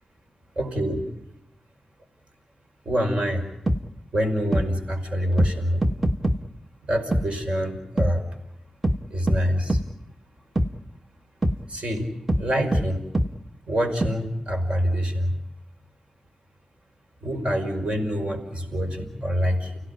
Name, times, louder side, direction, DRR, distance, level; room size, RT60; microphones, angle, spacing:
voice 1, 0.6-1.0 2.9-3.4 4.1-5.9 6.8-8.2 9.1-9.8 11.7-12.1 12.4-13.1 13.7-15.4 17.2-19.8, equal, 50° right, 4 dB, 5.5 m, -25 dB
sound 1, 3.7-3.8 4.5-4.7 5.4-5.5 5.8-6.4 7.1-7.2 8.0-8.1 8.8-9.0 9.3-9.4 9.7-9.8 10.6-10.7 11.4-11.6 12.3-12.4 12.7-12.8 13.1-13.3 14.0-14.1, right 1 dB, 15° right, 1.4 m, -22 dB
30.0 x 17.0 x 9.8 m, 0.82 s
wide cardioid pair, 90°, 2 cm